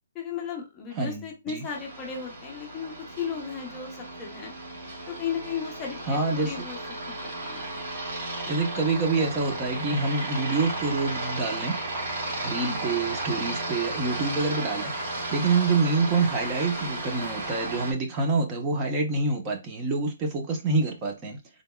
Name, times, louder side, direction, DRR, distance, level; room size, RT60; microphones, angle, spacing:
voice 1, 0.1-4.5 5.1-6.8 7.1-7.9 12.6-13.0, left 7 dB, 15° left, 0.9 m, -35 dB
voice 2, 1.0-1.6 6.1-6.5 8.5-11.8 12.4-14.9 15.3-21.4, right 3 dB, 20° right, 0.9 m, -26 dB
Aircraft, 1.6-17.9, right 2 dB, 40° right, 2.4 m, -34 dB
3.9 x 3.4 x 2.3 m
hypercardioid pair, 160°, 0 cm